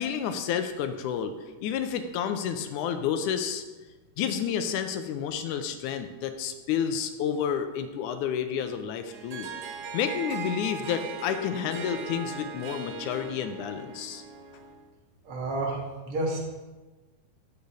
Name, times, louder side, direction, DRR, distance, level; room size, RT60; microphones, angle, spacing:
voice 1, 0.0-1.3 1.6-3.6 4.2-9.5 9.9-14.2, left 8 dB, 85° left, 7 dB, 2.1 m, -30 dB
Harp, 9.1-14.9, right 5 dB, 65° right, 1.8 m, -39 dB
voice 2, 15.2-16.4, right 2 dB, 45° right, -2 dB, 2.5 m, -30 dB
12.5 x 8.1 x 3.3 m, 1.2 s
omnidirectional pair, 3.6 m